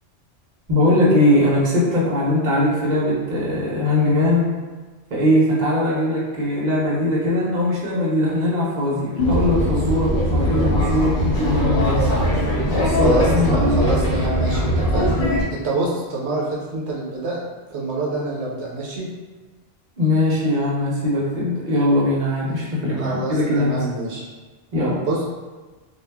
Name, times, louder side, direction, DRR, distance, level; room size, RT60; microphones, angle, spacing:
voice 1, 0.7-4.5 5.1-12.1 12.7-14.0 20.0-23.7 24.7-25.0, left 1 dB, 50° right, -5 dB, 0.8 m, -20 dB
sound 1, 9.2-15.4, equal, 65° left, 0.8 m, -20 dB
voice 2, 13.0-15.1 15.5-17.4 17.7-19.1 23.0-24.3 25.0-25.2, right 2 dB, 85° right, -3 dB, 0.9 m, -26 dB
2.3 x 2.1 x 3.3 m, 1.3 s
omnidirectional pair, 1.1 m